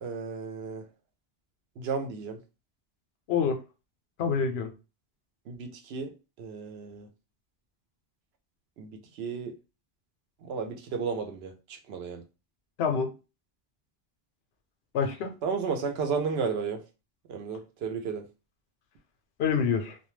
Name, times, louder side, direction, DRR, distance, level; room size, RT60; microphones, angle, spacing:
voice 1, 0.0-0.9 1.8-2.4 5.5-6.1 6.4-7.1 8.8-9.5 10.4-12.2 15.4-16.8 17.3-18.3, right 5 dB, 80° right, 0.8 m, -33 dB
voice 2, 3.3-3.6 4.2-4.7 12.8-13.1 14.9-15.3 19.4-20.0, left 6 dB, 90° left, 0.8 m, -26 dB
2.2 x 2.1 x 3.0 m
omnidirectional pair, 1.0 m